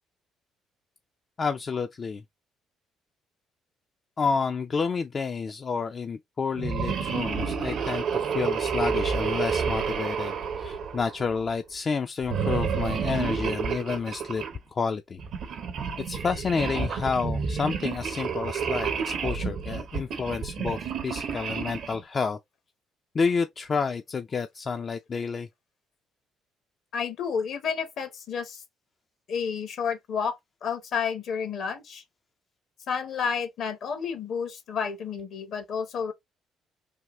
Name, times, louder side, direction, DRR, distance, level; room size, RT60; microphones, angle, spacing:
voice 1, 1.4-2.2 4.2-14.4 14.7-15.2 16.1-22.4 23.1-25.5, left 5 dB, 45° left, 0.4 m, -29 dB
sound 1, 6.5-11.4 12.2-14.6 15.2-22.0, right 6 dB, 70° right, 0.9 m, -30 dB
voice 2, 26.9-28.6 29.3-32.0 32.9-36.1, left 6 dB, 65° left, 0.9 m, -31 dB
3.5 x 2.3 x 2.9 m
supercardioid pair, 60°, 0 cm